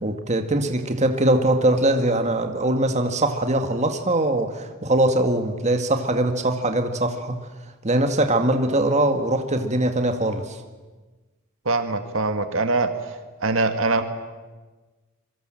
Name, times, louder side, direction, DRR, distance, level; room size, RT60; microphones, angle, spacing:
voice 1, 0.0-7.4 7.8-10.6, right 1 dB, 30° right, 6 dB, 1.9 m, -22 dB
voice 2, 11.7-12.9 13.4-14.0, right 3 dB, 65° right, 7 dB, 1.8 m, -22 dB
26.5 x 23.5 x 7.7 m, 1.3 s
head